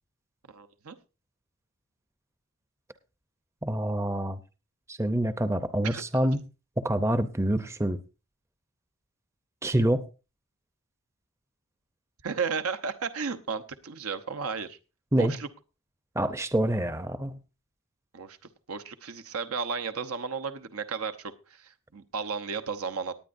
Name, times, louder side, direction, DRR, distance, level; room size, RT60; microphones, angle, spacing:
voice 1, 0.5-0.9 5.8-6.0 12.2-14.8 15.2-15.5 18.1-18.4 18.7-23.1, right 5 dB, 80° right, 0.9 m, -34 dB
voice 2, 3.6-4.4 4.9-6.4 6.8-8.0 9.6-10.0 15.1-15.3 16.2-17.4, right 1 dB, 15° right, 0.6 m, -26 dB
18.5 x 9.4 x 2.6 m
head